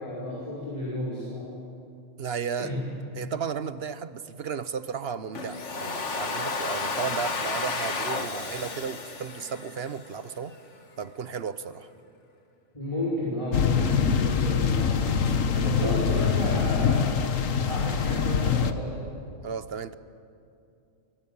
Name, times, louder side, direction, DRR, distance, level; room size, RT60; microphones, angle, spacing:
voice 1, 0.0-1.5 2.6-2.8 12.7-15.3 15.6-17.3 17.5-19.1, left 1 dB, 25° left, -5 dB, 5.2 m, -32 dB
voice 2, 2.2-2.7 3.2-10.6 11.0-11.9 15.5-16.1 19.4-19.9, right 6 dB, 55° right, 13 dB, 1.1 m, -34 dB
Domestic sounds home sounds, 5.3-10.3, left 3 dB, 65° left, 2.0 m, -32 dB
sound 1, 13.5-18.7, left 6 dB, 85° left, 1.5 m, -24 dB
24.5 x 23.5 x 8.7 m, 2.6 s
omnidirectional pair, 1.3 m